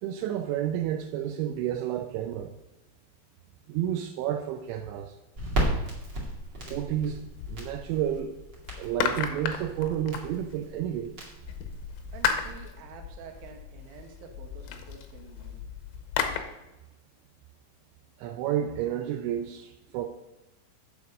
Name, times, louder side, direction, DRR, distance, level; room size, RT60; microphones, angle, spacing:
voice 1, 0.0-2.5 3.7-5.2 6.7-8.4 8.8-11.1 18.2-20.1, right 10 dB, 90° right, 6 dB, 2.6 m, -31 dB
Crackle, 5.4-12.7, right 1 dB, 50° right, 1.3 m, -35 dB
sound 1, 7.0-8.2 8.6-10.8 11.5-16.4, left 8 dB, 80° left, 2.7 m, -34 dB
voice 2, 12.1-15.6, right 7 dB, 70° right, 2 dB, 2.3 m, -48 dB
8.3 x 7.3 x 5.3 m, 1.0 s
omnidirectional pair, 5.9 m